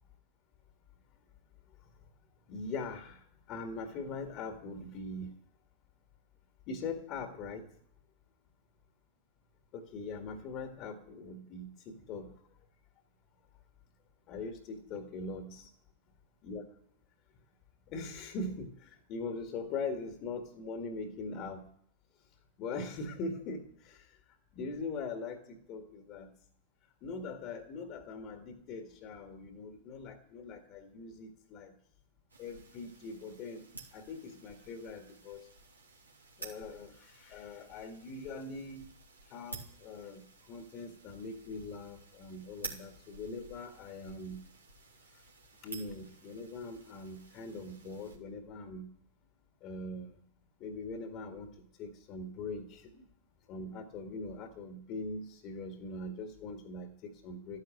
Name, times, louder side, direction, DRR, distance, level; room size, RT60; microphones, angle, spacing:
voice 1, 2.5-5.3 6.7-7.7 9.7-12.3 14.3-15.7 16.4-16.6 17.9-21.6 22.6-24.2 24.5-26.3 27.0-31.7 32.4-33.7 33.9-35.5 36.4-38.9 39.3-44.4 45.6-48.9 49.6-50.2 50.6-53.1 53.5-57.6, left 3 dB, 40° left, 5 dB, 2.0 m, -42 dB
sound 1, 32.3-48.2, right 3 dB, 80° right, 3.0 m, -52 dB
13.5 x 10.5 x 8.9 m, 0.64 s
figure-of-eight pair, 90°, 0 cm